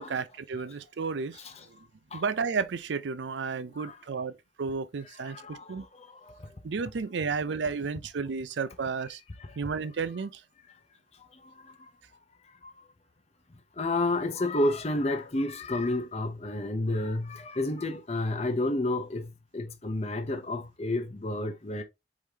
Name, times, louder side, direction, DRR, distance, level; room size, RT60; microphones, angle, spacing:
voice 1, 0.0-1.8 2.1-5.9 6.6-9.2 9.6-10.4, right 5 dB, 80° right, 0.5 m, -32 dB
voice 2, 5.2-6.5 9.5-9.6 11.2-11.9 12.6-12.8 13.8-21.8, left 2 dB, 35° left, 0.7 m, -31 dB
4.9 x 3.7 x 2.7 m
head